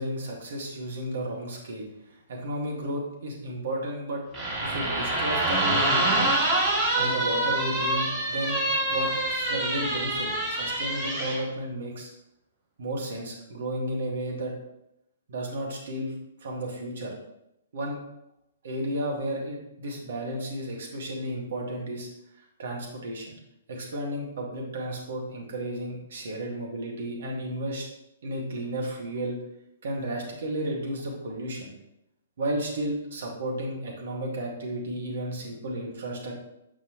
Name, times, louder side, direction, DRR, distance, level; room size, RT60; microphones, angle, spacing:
voice 1, 0.0-4.2 4.6-6.3 7.0-8.6 8.9-12.1 12.8-14.5 15.3-16.1 16.4-17.2 17.7-18.0 18.6-22.1 22.6-23.3 23.7-27.9 28.2-29.4 29.8-31.7 32.4-36.4, right 1 dB, 65° right, -1 dB, 2.1 m, -33 dB
sound 1, 4.3-11.4, right 2 dB, 20° right, 2.5 m, -26 dB
7.8 x 5.5 x 3.2 m, 0.85 s
figure-of-eight pair, 125°, 0 cm